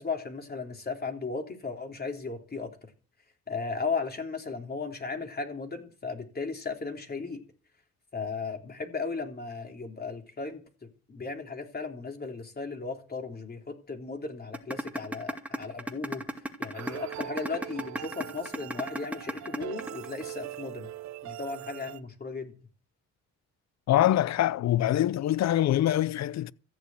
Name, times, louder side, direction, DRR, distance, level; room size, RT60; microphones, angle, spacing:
voice 1, 0.0-2.9 3.5-7.4 8.1-20.9 21.2-22.5, left 4 dB, 30° left, 3.5 m, -36 dB
sound 1, 14.5-20.5, equal, 5° right, 2.3 m, -34 dB
sound 2, 16.7-22.0, right 14 dB, 65° right, 0.8 m, -42 dB
voice 2, 23.9-26.5, left 12 dB, 60° left, 0.7 m, -24 dB
14.5 x 7.0 x 9.0 m
cardioid pair, 90°, 30 cm